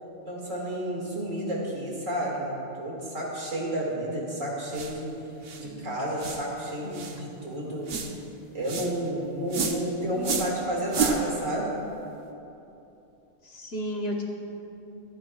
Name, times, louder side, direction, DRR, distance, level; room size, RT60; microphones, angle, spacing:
voice 1, 0.3-5.1 5.6-7.9 8.5-11.7, right 1 dB, 85° right, -3 dB, 2.6 m, -31 dB
sound 1, 4.7-5.0 5.4-5.6 6.2-6.4 6.9-7.2 7.9-8.1 8.6-8.9 9.5-9.8 10.2-10.5 10.9-11.2, right 5 dB, 55° right, 1.0 m, -30 dB
voice 2, 5.6-6.0 6.8-7.1 10.1-10.4 13.4-14.2, left 1 dB, 55° left, 0 dB, 1.4 m, -34 dB
25.5 x 8.7 x 2.4 m, 2.9 s
omnidirectional pair, 1.3 m